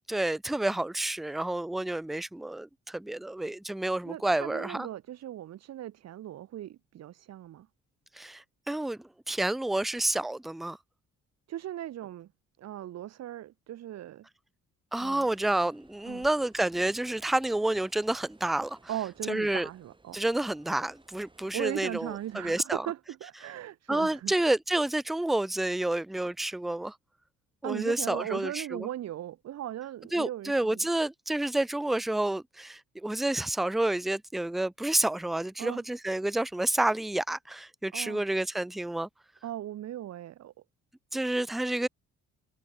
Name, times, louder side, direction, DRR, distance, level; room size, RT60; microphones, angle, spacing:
voice 1, 0.1-4.9 8.2-10.8 14.9-18.8 19.3-19.7 20.1-22.9 23.9-27.0 27.6-28.9 30.1-39.1 41.1-41.9, right 1 dB, ahead, 0.4 m, -29 dB
voice 2, 4.0-7.7 11.5-12.3 12.6-14.3 15.0-15.3 15.5-15.7 16.1-16.3 18.9-20.2 21.5-24.3 27.6-30.9 35.6-35.8 37.9-38.2 39.4-40.5, right 12 dB, 60° right, 0.8 m, -38 dB
sound 1, 14.9-22.6, right 2 dB, 15° right, 3.0 m, -60 dB
cardioid pair, 90°, 30 cm